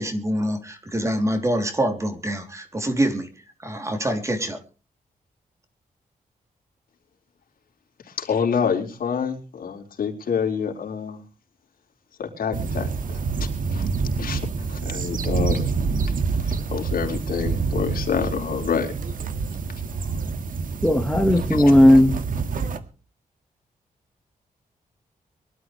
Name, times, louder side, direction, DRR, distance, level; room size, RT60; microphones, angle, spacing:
voice 1, 0.0-3.3 3.6-4.6, right 1 dB, 20° right, 5 dB, 3.1 m, -25 dB
voice 2, 8.1-11.2 12.2-13.2 13.7-13.9 14.2-15.7 16.4-18.9 19.9-20.2 21.5-21.6, left 6 dB, 80° left, 2 dB, 4.5 m, -27 dB
sound 1, 12.5-22.8, right 4 dB, 65° right, 1.8 m, -27 dB
voice 3, 20.8-22.2, left 1 dB, 5° left, 4 dB, 1.6 m, -15 dB
24.0 x 13.0 x 3.3 m, 0.36 s
wide cardioid pair, 150°, 15 cm